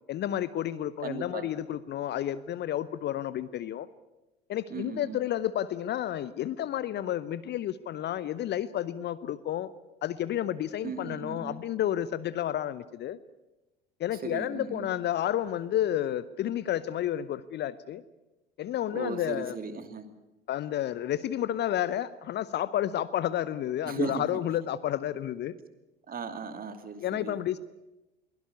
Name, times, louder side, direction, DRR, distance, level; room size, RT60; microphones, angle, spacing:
voice 1, 0.1-3.9 4.5-9.7 10.0-13.2 14.0-18.0 18.6-19.6 20.5-25.5 27.0-27.6, left 11 dB, 35° left, 17 dB, 0.7 m, -31 dB
voice 2, 1.0-1.5 4.7-5.2 10.8-11.6 14.1-14.9 18.9-20.1 23.8-24.4 26.1-27.4, right 5 dB, 30° right, 8 dB, 2.6 m, -37 dB
23.0 x 16.5 x 9.5 m, 1.0 s
figure-of-eight pair, 70°, 30 cm